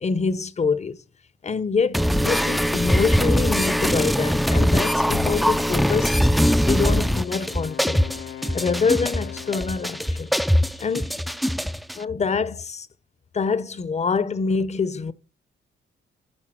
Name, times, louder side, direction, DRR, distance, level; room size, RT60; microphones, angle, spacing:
voice 1, 0.0-1.0 1.4-6.2 6.6-8.0 8.5-10.4 10.8-11.2 11.9-12.9 13.3-15.1, left 5 dB, 30° left, 0.7 m, -25 dB
sound 1, 1.9-12.0, equal, ahead, 0.4 m, -21 dB
Wind instrument woodwind instrument, 6.4-10.3, left 10 dB, 70° left, 0.7 m, -40 dB
10.5 x 3.8 x 6.4 m
cardioid pair, 90°, 21 cm